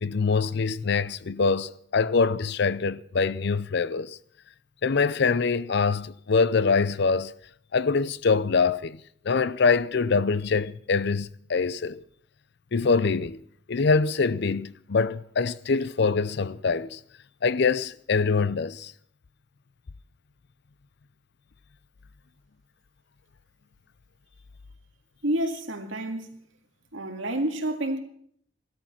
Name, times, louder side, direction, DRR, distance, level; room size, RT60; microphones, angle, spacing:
voice 1, 0.0-4.2 4.8-7.3 7.7-9.0 9.2-12.0 12.7-13.4 13.7-17.0 17.4-18.9, left 4 dB, 60° left, 0.6 m, -24 dB
voice 2, 25.2-26.4 26.9-28.0, right 1 dB, 90° right, 2.1 m, -29 dB
16.0 x 13.0 x 6.0 m
head